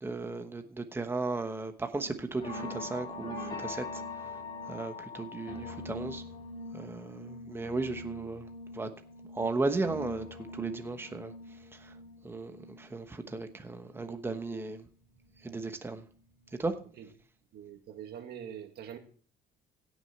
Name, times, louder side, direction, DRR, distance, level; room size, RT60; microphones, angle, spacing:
voice 1, 0.0-4.0 4.7-6.2 6.7-8.5 8.7-8.9 9.3-10.3 10.5-11.3 11.7-11.9 12.2-14.8 15.4-16.0 16.6-16.7, right 3 dB, 15° right, 1.1 m, -35 dB
sound 1, 1.9-14.1 14.5-16.1 16.4-16.8 17.1-17.2, left 2 dB, 30° left, 4.7 m, -43 dB
voice 2, 17.5-19.0, right 9 dB, 70° right, 1.8 m, -44 dB
16.5 x 6.3 x 4.5 m
cardioid pair, 110°, 17 cm